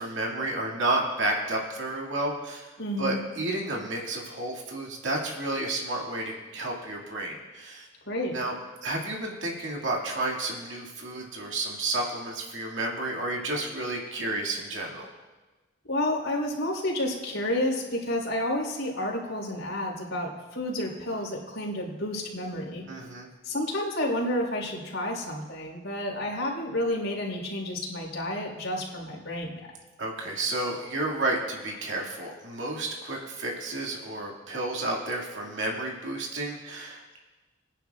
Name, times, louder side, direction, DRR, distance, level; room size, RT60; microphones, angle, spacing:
voice 1, 0.0-2.7 3.0-7.9 8.3-15.1 22.9-23.3 30.0-37.2, right 2 dB, 70° right, -1 dB, 2.2 m, -31 dB
voice 2, 2.8-3.2 8.1-8.3 15.9-22.8 23.4-29.5, left 1 dB, 85° left, -2 dB, 3.7 m, -30 dB
22.5 x 10.0 x 2.4 m, 1.2 s
head